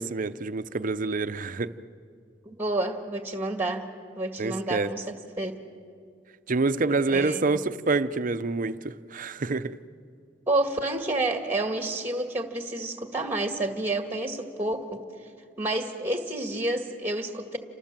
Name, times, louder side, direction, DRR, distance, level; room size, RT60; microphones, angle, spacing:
voice 1, 0.0-1.7 4.4-4.9 6.5-9.7, right 3 dB, 45° right, 0.7 m, -27 dB
voice 2, 2.5-3.9 4.2-5.6 7.1-7.6 10.5-14.9 15.6-17.6, right 2 dB, 10° right, 1.8 m, -29 dB
29.0 x 27.0 x 7.5 m
head